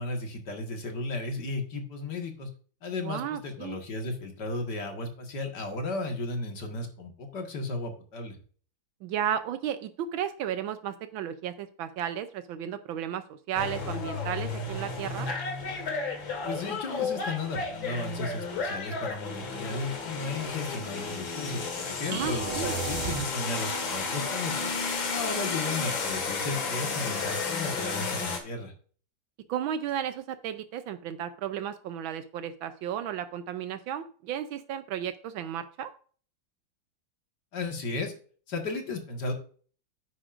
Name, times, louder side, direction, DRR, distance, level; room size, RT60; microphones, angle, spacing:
voice 1, 0.0-2.5 2.8-8.4 16.4-24.7 25.1-28.7 37.5-38.1 38.5-39.3, left 3 dB, 60° left, 3 dB, 2.2 m, -34 dB
voice 2, 2.9-3.8 9.0-15.3 22.1-22.8 29.5-35.9, right 9 dB, 85° right, 10 dB, 1.5 m, -34 dB
sound 1, 13.5-28.4, left 4 dB, 75° left, 2.6 m, -32 dB
sound 2, 22.1-23.8, right 5 dB, 55° right, 0.5 m, -35 dB
10.0 x 9.6 x 2.5 m, 0.43 s
omnidirectional pair, 2.1 m